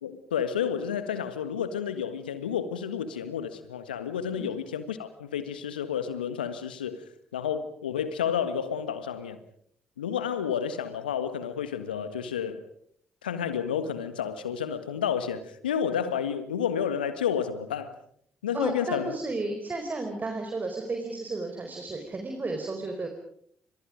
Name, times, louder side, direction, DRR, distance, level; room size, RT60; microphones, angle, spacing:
voice 1, 0.0-7.0 7.3-9.4 10.0-12.6 13.2-17.9 18.4-19.1, left 8 dB, 85° left, 12 dB, 1.6 m, -30 dB
voice 2, 18.5-23.1, right 3 dB, 35° right, 4 dB, 4.6 m, -33 dB
30.0 x 26.5 x 5.1 m, 0.64 s
figure-of-eight pair, 40°, 5 cm